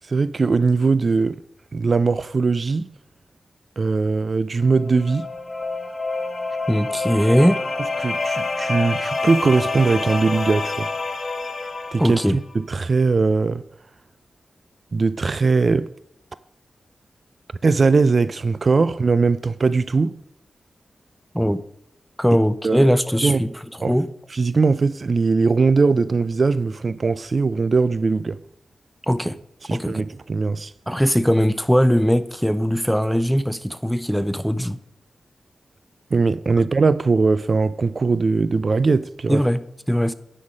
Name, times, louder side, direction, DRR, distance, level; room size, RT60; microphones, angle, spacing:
voice 1, 0.1-1.4 1.7-2.9 3.8-5.3 8.0-10.9 11.9-13.6 14.9-15.9 17.6-20.2 22.6-22.9 23.2-23.4 23.8-23.9 24.3-28.4 29.7-30.7 36.1-39.4, right 4 dB, 55° right, 0.3 m, -20 dB
sound 1, 4.6-12.4, left 3 dB, 55° left, 1.1 m, -27 dB
voice 2, 6.7-7.6 12.0-12.4 21.3-21.6 22.2-23.5 23.9-24.1 29.1-29.4 29.7-30.0 30.9-34.8 39.3-40.1, equal, ahead, 0.6 m, -20 dB
9.5 x 5.8 x 5.1 m
cardioid pair, 55°, 0 cm